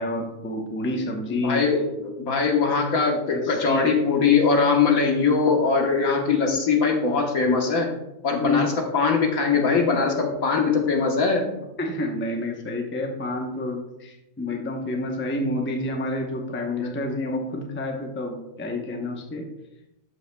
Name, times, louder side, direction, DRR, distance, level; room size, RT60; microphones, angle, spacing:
voice 1, 0.0-1.6 3.4-3.9 8.4-8.6 11.8-19.5, left 2 dB, 10° left, 1 dB, 0.6 m, -29 dB
voice 2, 1.4-7.9 8.2-11.5 16.8-16.9, left 4 dB, 65° left, 2 dB, 1.6 m, -21 dB
12.5 x 5.6 x 2.3 m, 0.92 s
omnidirectional pair, 1.6 m